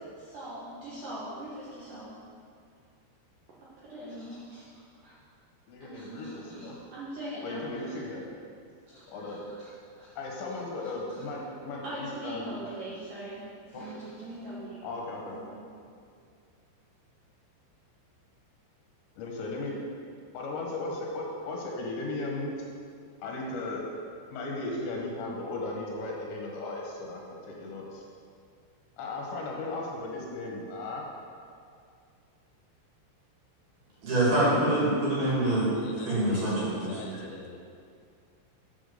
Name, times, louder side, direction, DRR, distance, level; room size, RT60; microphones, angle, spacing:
voice 1, 0.2-2.1 3.6-4.7 5.0-5.1 5.8-8.0 8.9-9.7 10.0-10.1 10.5-11.3 11.8-14.8 15.3-15.6, right 1 dB, 85° right, -8 dB, 1.8 m, -42 dB
voice 2, 5.7-6.8 7.4-8.2 9.1-9.4 10.2-12.5 13.7-13.8 14.8-15.4 19.2-19.7 20.3-22.5 23.2-23.8 24.3-28.1 29.0-31.1, left 2 dB, 65° left, -1 dB, 3.5 m, -36 dB
voice 3, 34.0-37.0, right 1 dB, 55° right, -7 dB, 3.6 m, -25 dB
voice 4, 35.7-37.6, left 5 dB, 85° left, 2 dB, 3.4 m, -42 dB
8.6 x 6.1 x 6.8 m, 2.3 s
omnidirectional pair, 6.0 m